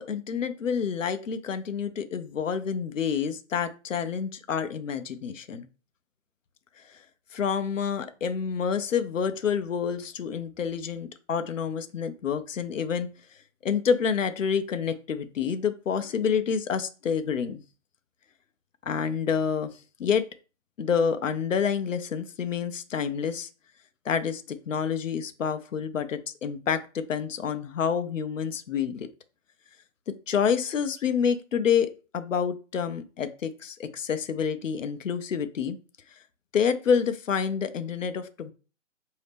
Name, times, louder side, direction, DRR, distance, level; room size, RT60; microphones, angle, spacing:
voice 1, 0.0-5.7 7.3-13.1 13.6-17.6 18.9-19.7 20.0-20.3 20.8-23.5 24.0-29.1 30.3-35.8 36.5-38.5, left 7 dB, 85° left, 10 dB, 0.6 m, -28 dB
4.2 x 2.8 x 3.3 m, 0.35 s
hypercardioid pair, 140°, 38 cm